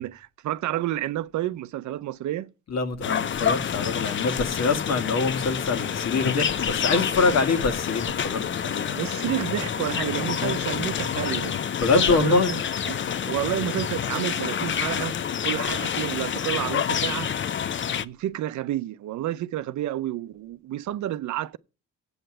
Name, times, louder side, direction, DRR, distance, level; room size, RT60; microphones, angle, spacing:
voice 1, 0.0-2.5 6.9-7.0 8.9-12.6 12.9-13.0 13.3-15.2 15.4-17.3 18.0-21.6, right 13 dB, 70° right, 0.6 m, -30 dB
voice 2, 2.7-9.0 11.8-12.5, left 4 dB, 60° left, 1.7 m, -24 dB
sound 1, 3.0-18.0, left 8 dB, 40° left, 0.6 m, -28 dB
8.0 x 7.8 x 7.7 m
cardioid pair, 90°, 30 cm